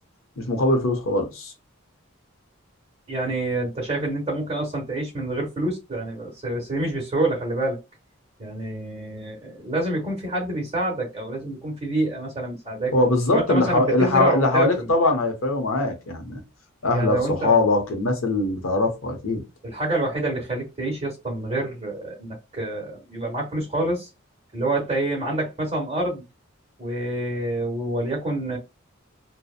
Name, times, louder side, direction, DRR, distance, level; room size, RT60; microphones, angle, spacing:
voice 1, 0.4-1.5 12.9-16.4 16.8-19.4, left 2 dB, 85° left, 0.7 m, -22 dB
voice 2, 3.1-7.8 8.4-12.9 13.3-14.9 16.9-17.6 19.6-24.1 24.5-26.2 26.8-28.6, right 1 dB, 30° right, 0.8 m, -27 dB
2.7 x 2.0 x 2.4 m
head